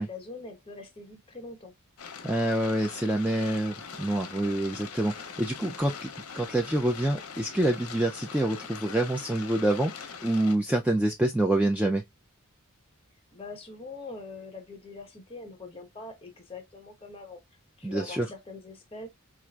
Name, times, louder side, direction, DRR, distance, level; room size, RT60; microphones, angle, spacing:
voice 1, 0.0-1.7 5.5-5.7 13.3-17.4 17.8-19.1, left 3 dB, 25° left, 1.0 m, -43 dB
sound 1, 2.0-10.6, left 6 dB, 75° left, 0.7 m, -42 dB
voice 2, 2.2-6.1 6.3-12.0 17.8-18.3, right 1 dB, 5° right, 0.3 m, -27 dB
4.3 x 2.5 x 2.3 m
head